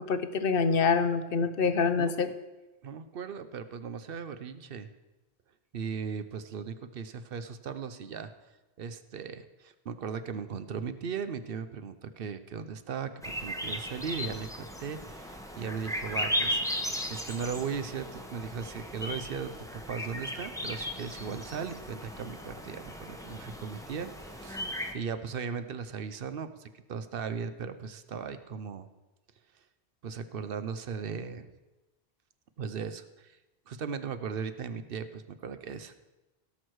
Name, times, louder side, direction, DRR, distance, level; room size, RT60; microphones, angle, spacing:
voice 1, 0.1-2.3, left 5 dB, 65° left, 11 dB, 0.9 m, -26 dB
voice 2, 2.0-2.3 2.8-4.9 5.7-8.3 8.8-13.1 13.4-16.6 17.1-24.6 24.9-28.9 30.0-31.5 32.6-33.4 33.7-35.9, right 6 dB, 65° right, 11 dB, 0.8 m, -37 dB
sound 1, 13.2-24.9, equal, 5° left, 0.9 m, -36 dB
17.0 x 6.3 x 4.7 m, 1.1 s
omnidirectional pair, 1.1 m